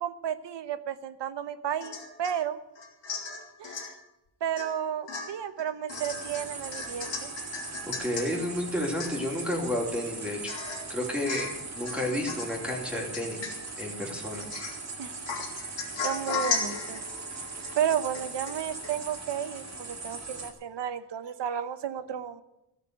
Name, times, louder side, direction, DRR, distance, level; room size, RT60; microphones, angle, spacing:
voice 1, 0.0-2.6 3.6-4.0 4.4-7.3 15.0-15.2 16.0-17.0 17.7-22.4, right 9 dB, 80° right, 13 dB, 1.0 m, -32 dB
Domestic sounds home sounds / Chink clink / Drip, 1.8-2.4 2.8-3.9 4.6-4.8 5.1-8.3 8.7-8.8 9.0-9.5 9.9-10.0 10.5-10.9 11.3-11.6 11.9-12.6 13.1-13.9 14.3-14.9 15.3-18.6 18.8-18.9, left 5 dB, 90° left, 3.2 m, -36 dB
sound 1, 5.9-20.5, right 3 dB, 40° right, 2.0 m, -40 dB
voice 2, 8.0-10.5 10.9-14.4, left 1 dB, 5° right, -2 dB, 3.0 m, -31 dB
15.0 x 6.7 x 9.5 m, 0.92 s
wide cardioid pair, 165°, 42 cm